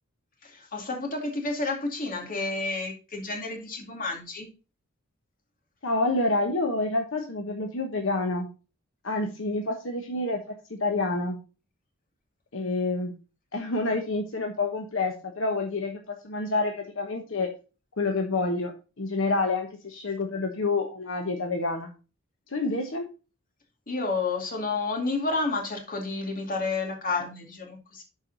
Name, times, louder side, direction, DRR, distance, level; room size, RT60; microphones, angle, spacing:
voice 1, 0.4-4.5 23.9-28.0, left 3 dB, 40° left, 2 dB, 2.3 m, -30 dB
voice 2, 5.8-8.5 9.0-11.4 12.5-13.1 13.5-17.5 18.0-21.9 22.5-23.1, left 2 dB, 65° left, 3 dB, 1.2 m, -28 dB
11.5 x 4.7 x 4.0 m, 0.32 s
head